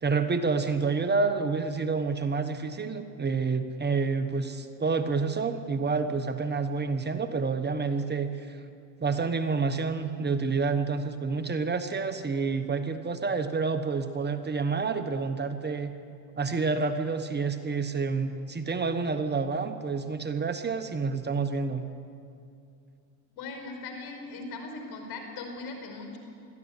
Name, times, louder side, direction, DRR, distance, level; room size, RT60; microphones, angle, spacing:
voice 1, 0.0-8.6 9.0-15.9 16.4-21.8, right 4 dB, 25° right, 8 dB, 1.3 m, -28 dB
voice 2, 23.4-26.2, left 3 dB, 60° left, 4 dB, 5.2 m, -39 dB
22.0 x 14.0 x 9.6 m, 2.4 s
supercardioid pair, 100°, 42 cm